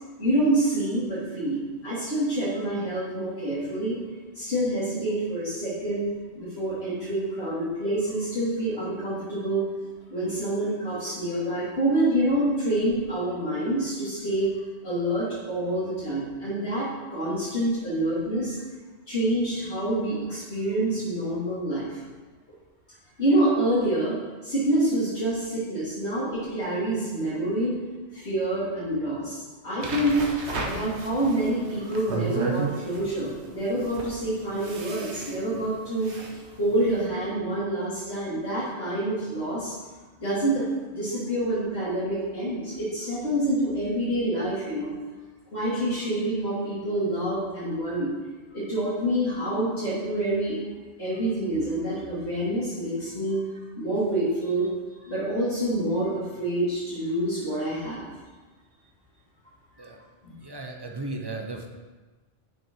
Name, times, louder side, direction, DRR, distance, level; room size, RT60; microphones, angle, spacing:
voice 1, 0.2-4.0 4.3-6.1 6.3-9.6 10.1-14.5 14.8-18.6 19.1-22.0 23.2-24.2 24.4-27.8 28.1-30.2 30.6-39.7 40.2-44.9 45.5-48.1 48.5-50.6 51.0-53.4 53.7-54.7 55.0-58.1 59.8-59.9 60.2-60.3, right 1 dB, 70° left, -11 dB, 3.0 m, -27 dB
sound 1, 29.8-37.0, right 4 dB, 80° right, 1.5 m, -34 dB
voice 2, 60.4-61.7, right 2 dB, 25° right, 2 dB, 1.0 m, -35 dB
11.0 x 6.2 x 4.6 m, 1.3 s
omnidirectional pair, 1.1 m